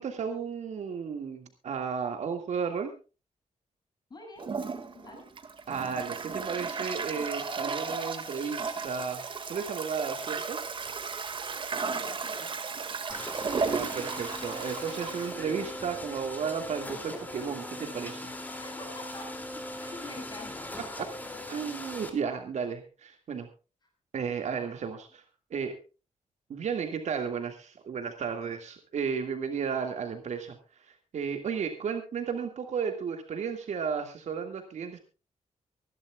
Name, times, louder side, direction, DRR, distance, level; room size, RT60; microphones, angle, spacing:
voice 1, 0.0-2.9 5.7-9.2 9.5-10.6 13.6-18.4 21.0-21.1 21.5-23.5 24.1-25.2 25.5-25.7 26.5-35.0, right 6 dB, 70° right, 5 dB, 2.0 m, -34 dB
voice 2, 4.1-4.5 4.9-5.3 11.9-12.5 18.6-19.2 19.5-20.7, left 2 dB, 35° left, 2 dB, 7.0 m, -45 dB
Toilet flush, 4.4-16.2, right 4 dB, 40° right, 1.9 m, -35 dB
sound 1, 13.1-22.1, left 1 dB, 15° left, 2.6 m, -40 dB
25.0 x 11.5 x 2.3 m, 0.33 s
wide cardioid pair, 180°, 12 cm